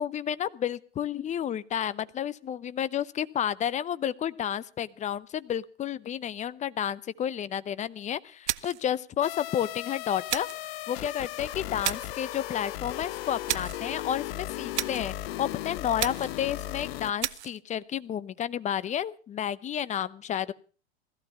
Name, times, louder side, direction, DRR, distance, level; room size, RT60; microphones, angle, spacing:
voice 1, 0.0-10.5 10.9-20.5, left 9 dB, 20° left, 18 dB, 0.7 m, -31 dB
sound 1, 8.5-8.9 10.3-10.7 11.8-12.2 13.5-13.8 14.7-15.1 16.0-16.4 17.2-17.6, right 13 dB, 75° right, 0.8 m, -32 dB
sound 2, 9.2-17.1, left 15 dB, 60° left, 0.9 m, -36 dB
17.0 x 14.5 x 5.7 m, 0.39 s
hypercardioid pair, 110°, 34 cm